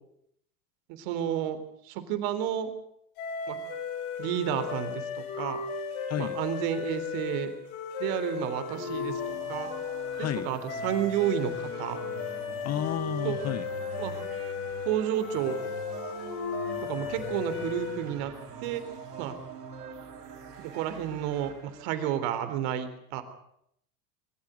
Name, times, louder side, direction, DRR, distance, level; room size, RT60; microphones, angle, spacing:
voice 1, 0.9-2.7 3.5-3.6 4.2-5.6 6.2-7.5 8.0-9.7 10.2-12.0 13.2-13.4 14.0-14.1 14.9-15.6 16.9-18.3 18.6-18.8 19.2-19.3 20.6-23.2, right 10 dB, 60° right, 10 dB, 3.8 m, -31 dB
sound 1, 3.2-18.2, left 6 dB, 65° left, 4.5 m, -35 dB
voice 2, 6.1-6.4 10.2-10.5 12.6-13.7, left 10 dB, 35° left, 17 dB, 1.3 m, -31 dB
sound 2, 8.7-22.2, right 7 dB, 90° right, 5.6 m, -44 dB
23.0 x 15.0 x 9.2 m, 0.73 s
hypercardioid pair, 100°, 46 cm